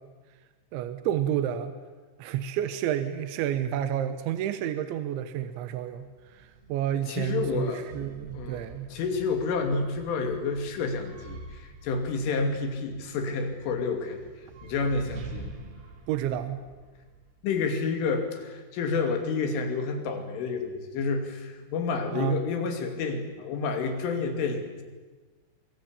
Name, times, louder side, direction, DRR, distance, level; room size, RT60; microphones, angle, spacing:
voice 1, 0.7-1.7 2.2-9.0 16.1-16.6 22.1-22.4, right 10 dB, 75° right, 11 dB, 3.1 m, -30 dB
sound 1, 5.8-18.0, right 3 dB, 60° right, 4.8 m, -47 dB
voice 2, 6.9-7.8 8.3-14.2 14.6-15.5 17.4-24.8, left 4 dB, 70° left, 5 dB, 5.0 m, -29 dB
24.5 x 23.5 x 8.7 m, 1.3 s
omnidirectional pair, 5.9 m